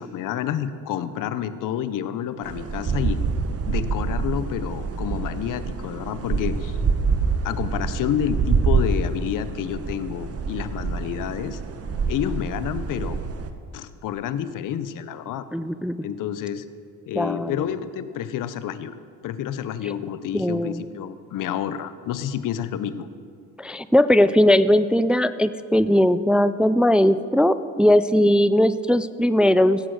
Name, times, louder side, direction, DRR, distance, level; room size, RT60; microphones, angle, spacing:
voice 1, 0.0-3.2 3.7-6.8 7.4-11.6 12.1-13.2 13.7-15.4 16.0-16.6 17.1-18.9 19.2-23.1, left 9 dB, 75° left, 13 dB, 0.8 m, -29 dB
sound 1, 2.4-13.5, right 5 dB, 45° right, 1.1 m, -26 dB
voice 2, 15.5-16.0 17.2-17.7 19.8-19.9 20.3-20.8 23.6-29.8, left 1 dB, 5° right, 13 dB, 0.3 m, -19 dB
16.0 x 8.1 x 6.3 m, 2.2 s
cardioid pair, 85°, 32 cm